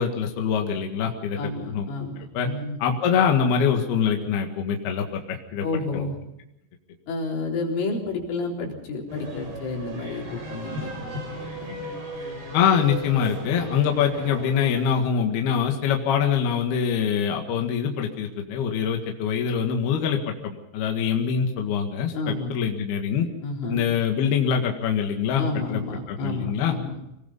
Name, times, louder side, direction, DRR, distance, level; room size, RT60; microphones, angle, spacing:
voice 1, 0.0-1.4 1.7-1.9 2.4-2.5 2.8-5.6 5.9-6.1 12.5-23.3 23.7-25.8 26.1-26.7, left 7 dB, 60° left, 2 dB, 3.5 m, -24 dB
voice 2, 1.4-2.8 5.6-6.2 7.1-11.8 22.1-22.5 23.4-23.9 25.4-27.0, left 3 dB, 80° left, -1 dB, 6.5 m, -31 dB
sound 1, 9.1-15.0, right 1 dB, 50° right, 7.8 m, -36 dB
26.0 x 19.5 x 5.5 m, 0.84 s
omnidirectional pair, 5.6 m